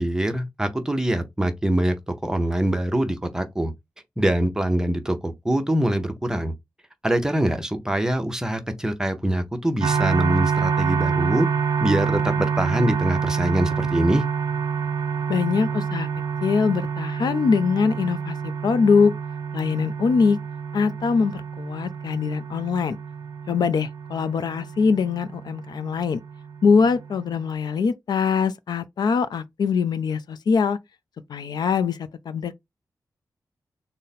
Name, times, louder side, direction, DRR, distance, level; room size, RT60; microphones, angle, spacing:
voice 1, 0.0-3.7 4.2-6.5 7.0-11.5 11.8-14.2, right 1 dB, 10° right, 0.6 m, -24 dB
sound 1, 9.8-27.5, right 6 dB, 60° right, 0.4 m, -27 dB
voice 2, 15.3-16.1 16.4-19.1 19.5-20.4 20.7-23.0 23.5-26.2 26.6-30.8 31.3-32.0 32.3-32.5, left 5 dB, 75° left, 0.4 m, -22 dB
3.9 x 2.1 x 4.0 m
wide cardioid pair, 175°, 7 cm